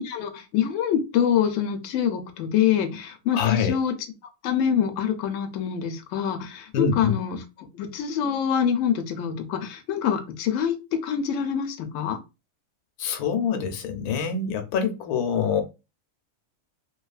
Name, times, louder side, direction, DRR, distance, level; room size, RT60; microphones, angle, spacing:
voice 1, 0.0-3.9 4.4-12.2, left 8 dB, 70° left, 0.8 m, -25 dB
voice 2, 3.3-3.8 6.7-7.1 13.0-15.6, left 6 dB, 90° left, 1.1 m, -25 dB
2.7 x 2.3 x 2.3 m
omnidirectional pair, 1.6 m